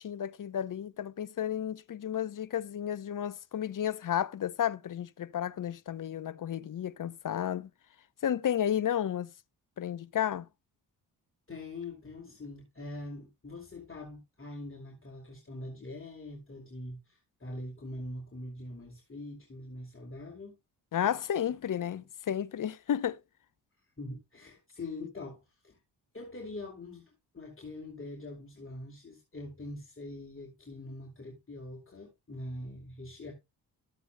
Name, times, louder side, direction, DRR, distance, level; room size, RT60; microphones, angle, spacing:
voice 1, 0.0-7.7 8.2-9.3 9.8-10.4 20.9-23.2, left 10 dB, 40° left, 0.7 m, -32 dB
voice 2, 11.5-20.6 24.0-25.8 26.1-33.3, left 2 dB, 25° left, 2.8 m, -43 dB
13.5 x 8.0 x 2.3 m
hypercardioid pair, 40°, 47 cm